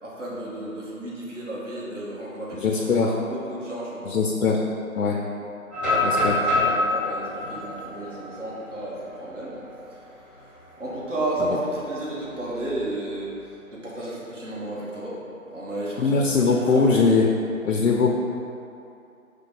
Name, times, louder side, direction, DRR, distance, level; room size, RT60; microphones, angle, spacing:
voice 1, 0.0-4.2 5.8-9.6 9.9-10.0 10.3-10.5 10.8-15.2 15.5-17.1, right 1 dB, 55° right, -7 dB, 1.3 m, -33 dB
voice 2, 2.6-3.1 4.0-4.6 5.0-5.2 6.0-6.4 16.0-17.3 17.6-18.1, left 4 dB, 80° left, 0 dB, 0.6 m, -21 dB
sound 1, 5.7-9.6 10.1-10.2 10.6-10.9 12.3-13.1, left 2 dB, 20° right, 1.5 m, -26 dB
4.4 x 2.2 x 4.6 m, 2.7 s
figure-of-eight pair, 170°, 43 cm